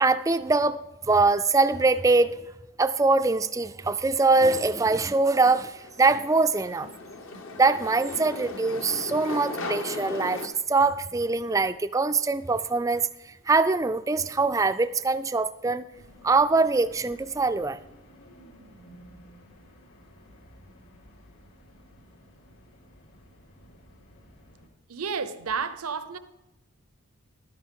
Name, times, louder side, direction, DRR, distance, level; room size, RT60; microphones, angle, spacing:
voice 1, 0.0-0.8 1.0-2.4 2.8-6.9 7.5-15.9 16.2-17.8, right 3 dB, 15° right, 13 dB, 0.3 m, -23 dB
sound 1, 5.0-10.5, left 2 dB, 65° left, 1.1 m, -37 dB
sound 2, 15.9-24.7, equal, 80° left, 3.8 m, -53 dB
voice 2, 24.9-26.2, right 5 dB, 85° right, 12 dB, 0.7 m, -31 dB
12.5 x 10.5 x 3.7 m, 1.0 s
head